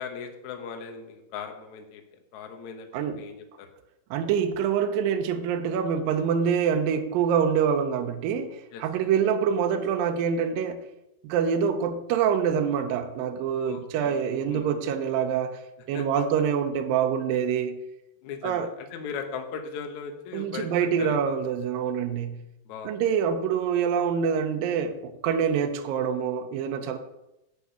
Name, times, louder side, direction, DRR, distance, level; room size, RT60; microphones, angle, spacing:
voice 1, 0.0-2.0 2.3-3.7 8.7-8.8 13.6-14.2 14.5-14.7 15.9-16.1 18.2-21.4 22.7-23.0, left 6 dB, 70° left, 4 dB, 1.8 m, -38 dB
voice 2, 2.9-3.2 4.1-10.8 11.2-15.6 15.9-17.8 18.4-18.7 20.3-22.4 22.8-27.0, right 7 dB, 85° right, 5 dB, 2.0 m, -25 dB
8.3 x 6.1 x 8.2 m, 0.90 s
omnidirectional pair, 5.0 m